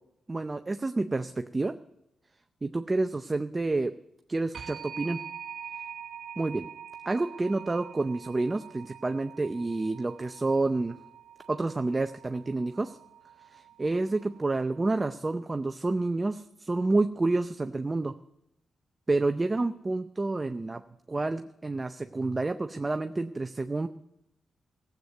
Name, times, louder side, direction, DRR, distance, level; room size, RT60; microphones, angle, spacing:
voice 1, 0.3-1.7 2.6-3.9 4.3-5.2 6.4-6.7 7.1-11.0 11.5-13.0 13.5-18.1 19.1-20.8 21.1-23.9, right 2 dB, 25° right, 8 dB, 0.5 m, -29 dB
sound 1, 4.5-15.2, right 8 dB, 70° right, 0.6 m, -45 dB
16.0 x 8.1 x 7.9 m, 0.85 s
cardioid pair, 90°, 0 cm